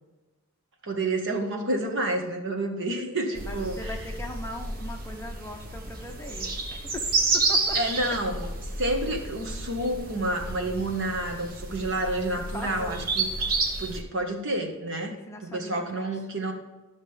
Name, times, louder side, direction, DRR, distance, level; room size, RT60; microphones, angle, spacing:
voice 1, 0.8-3.9 7.7-8.5 8.8-13.5 13.8-15.1 15.4-16.5, right 1 dB, 60° right, 3 dB, 1.5 m, -29 dB
sound 1, 3.3-14.0, right 3 dB, 45° right, 1.3 m, -31 dB
voice 2, 3.4-7.8 12.5-13.1 15.1-16.1, left 1 dB, 10° left, 3 dB, 0.8 m, -40 dB
12.5 x 6.4 x 3.4 m, 1.2 s
head